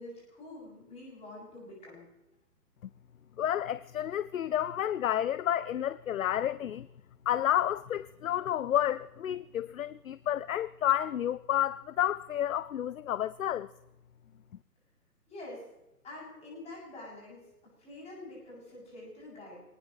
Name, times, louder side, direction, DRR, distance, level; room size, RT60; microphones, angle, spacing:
voice 1, 0.0-2.0 15.3-15.6 16.0-17.4 17.8-19.6, left 2 dB, 15° left, 7.3 m, -46 dB
voice 2, 3.4-6.9 7.3-13.7, left 11 dB, 55° left, 0.5 m, -30 dB
24.0 x 19.0 x 3.1 m
figure-of-eight pair, 130°, 48 cm